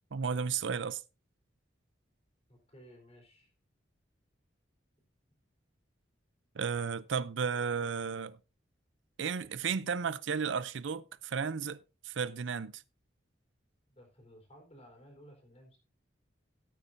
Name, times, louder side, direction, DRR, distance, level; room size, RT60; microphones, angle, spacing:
voice 1, 0.1-1.0 6.6-8.4 9.2-12.8, right 6 dB, 75° right, 0.5 m, -34 dB
voice 2, 2.5-3.5 13.9-15.8, equal, 30° left, 4.2 m, -56 dB
17.0 x 8.6 x 2.6 m
head